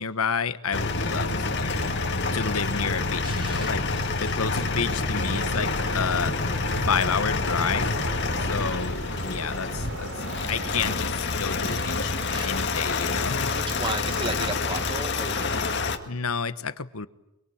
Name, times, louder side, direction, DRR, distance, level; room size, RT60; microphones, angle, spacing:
voice 1, 0.0-1.9 2.3-6.4 6.9-8.0 8.4-12.1 12.4-13.5 16.1-17.1, left 5 dB, 85° left, 12 dB, 1.3 m, -30 dB
sound 1, 0.7-16.0, left 3 dB, 55° left, 2.1 m, -27 dB
voice 2, 3.2-5.4 11.6-12.0 12.3-12.8 13.5-15.8, right 3 dB, 20° right, 10 dB, 1.2 m, -37 dB
sound 2, 5.3-10.9, right 2 dB, 60° right, 3.3 m, -39 dB
25.0 x 23.5 x 8.8 m, 0.90 s
head